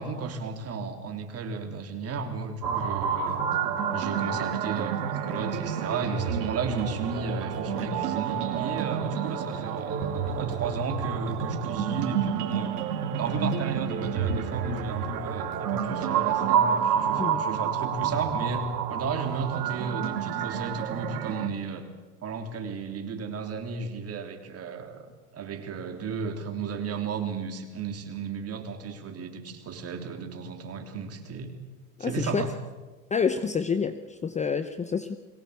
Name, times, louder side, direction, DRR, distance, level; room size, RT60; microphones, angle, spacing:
voice 1, 0.0-3.4 3.9-10.0 10.4-12.8 13.2-21.9 22.2-25.1 25.3-31.5 32.0-32.5, right 5 dB, 30° right, 5 dB, 3.4 m, -34 dB
sound 1, 2.6-21.5, right 7 dB, 80° right, 3.0 m, -29 dB
voice 2, 32.0-32.5 33.1-35.2, left 6 dB, 15° left, 11 dB, 0.8 m, -28 dB
22.5 x 17.5 x 8.3 m, 1.3 s
supercardioid pair, 115°, 46 cm